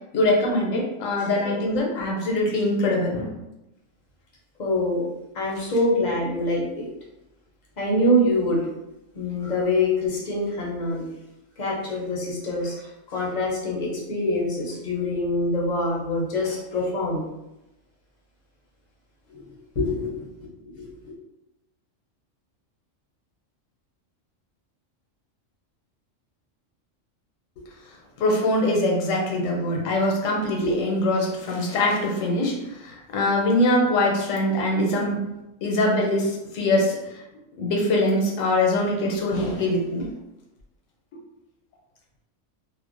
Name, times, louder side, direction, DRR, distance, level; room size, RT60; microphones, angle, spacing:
voice 1, 0.1-3.3 28.2-32.6 32.8-35.2 35.6-37.0 37.6-40.1, left 1 dB, 80° left, 0 dB, 1.0 m, -23 dB
voice 2, 1.2-1.6 4.6-5.0 5.3-6.8 7.8-8.6 9.1-11.0 11.6-12.8 13.1-17.2 19.3-19.4 19.8-20.2 20.6-21.1, left 1 dB, 50° left, -3 dB, 0.6 m, -25 dB
2.5 x 2.0 x 2.5 m, 0.92 s
omnidirectional pair, 1.3 m